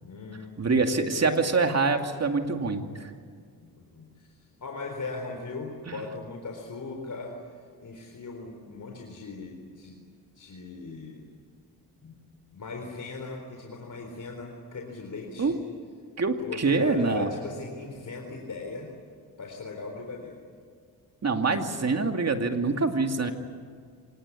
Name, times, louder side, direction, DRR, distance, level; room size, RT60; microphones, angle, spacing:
voice 1, 0.0-0.6 3.6-4.3 4.6-10.0 10.3-11.3 12.0-12.2 12.5-15.6 16.4-18.9 19.4-20.4, left 3 dB, 50° left, 2 dB, 4.0 m, -38 dB
voice 2, 0.6-3.1 5.9-6.0 15.4-15.6 16.2-17.3 21.2-23.3, right 4 dB, 40° right, 5 dB, 2.5 m, -25 dB
26.0 x 19.0 x 9.9 m, 2.1 s
cardioid pair, 80°, 38 cm